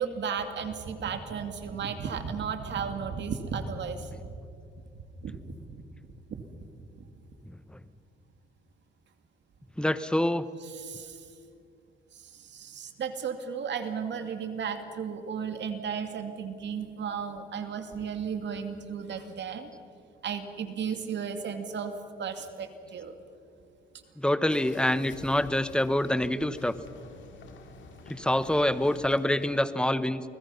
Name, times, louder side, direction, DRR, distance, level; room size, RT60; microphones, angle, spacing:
voice 1, 0.0-4.3 5.2-5.4 10.8-11.2 12.5-19.7 20.2-21.9 22.2-23.1, right 6 dB, 65° right, 7 dB, 2.4 m, -34 dB
voice 2, 7.4-7.8 9.8-10.4 24.2-26.7 28.1-30.2, left 1 dB, 5° left, 13 dB, 1.0 m, -26 dB
sound 1, 24.5-29.6, left 4 dB, 70° left, 2.8 m, -48 dB
29.0 x 20.0 x 5.7 m, 2.5 s
cardioid pair, 90°, 20 cm